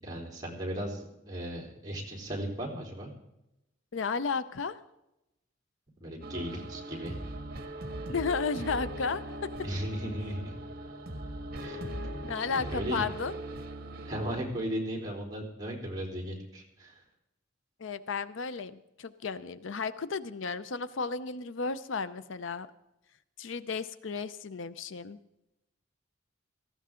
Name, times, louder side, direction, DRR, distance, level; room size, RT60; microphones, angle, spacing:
voice 1, 0.0-3.1 6.0-7.2 9.6-10.6 11.6-11.8 12.7-13.0 14.0-17.0, equal, 20° right, -2 dB, 3.6 m, -36 dB
voice 2, 3.9-4.8 8.1-9.5 12.2-13.3 17.8-22.7 23.4-25.2, left 5 dB, 70° left, 14 dB, 0.6 m, -33 dB
sound 1, 6.2-14.4, right 1 dB, 50° right, 1.6 m, -40 dB
18.5 x 15.0 x 3.7 m, 0.90 s
head